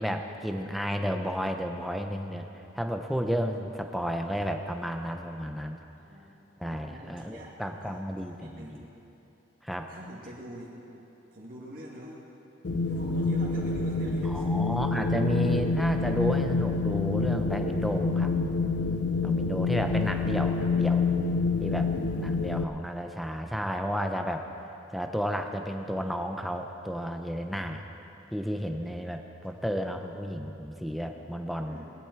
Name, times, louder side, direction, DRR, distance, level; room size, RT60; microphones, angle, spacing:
voice 1, 0.0-2.5 2.7-5.8 6.6-8.8 9.6-9.9 14.2-18.3 19.2-21.1 21.6-21.9 22.2-24.5 24.9-27.8 28.3-31.8, equal, ahead, 4 dB, 0.6 m, -32 dB
voice 2, 6.0-6.3 6.6-8.8 9.9-10.7 11.3-12.1 12.8-14.4 21.7-22.3 31.6-31.9, equal, 45° right, -5 dB, 2.2 m, -45 dB
Wind, 12.6-22.6, left 4 dB, 65° left, 0.5 m, -27 dB
18.5 x 11.5 x 4.7 m, 3.0 s
head